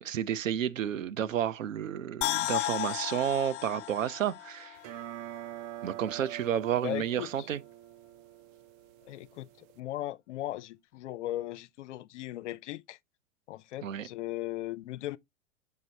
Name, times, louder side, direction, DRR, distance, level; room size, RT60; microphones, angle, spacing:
voice 1, 0.0-4.8 5.8-7.6 13.8-14.1, right 10 dB, 75° right, 0.8 m, -31 dB
sound 1, 2.2-5.4 5.7-5.8, left 16 dB, 45° left, 0.9 m, -34 dB
sound 2, 4.8-9.8, right 14 dB, 35° right, 0.4 m, -45 dB
voice 2, 6.8-7.5 9.0-13.0 13.5-15.2, left 15 dB, 65° left, 0.6 m, -38 dB
6.4 x 5.4 x 2.8 m
hypercardioid pair, 100°, 39 cm